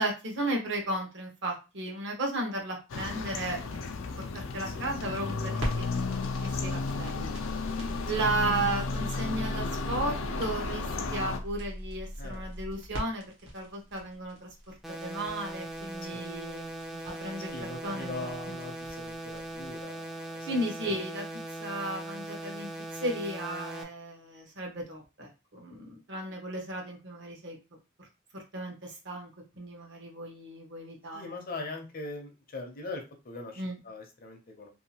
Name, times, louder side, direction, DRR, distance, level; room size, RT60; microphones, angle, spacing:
voice 1, 0.0-3.6 4.2-5.8 6.4-7.3 8.1-13.2 13.5-18.6 20.5-21.2 21.6-27.6 28.0-28.1 28.3-29.3 29.6-31.4 33.6-33.8, right 2 dB, 60° right, 1 dB, 0.8 m, -35 dB
sound 1, 2.9-11.4, left 4 dB, 90° left, 0.4 m, -34 dB
sound 2, 5.1-19.8, equal, 75° right, 1.1 m, -40 dB
voice 2, 12.2-12.5 16.1-16.2 17.5-21.0 31.1-34.7, left 2 dB, 45° left, 4 dB, 0.6 m, -41 dB
sound 3, 14.8-23.8, right 1 dB, ahead, 0.4 m, -40 dB
2.7 x 2.3 x 2.8 m, 0.29 s
head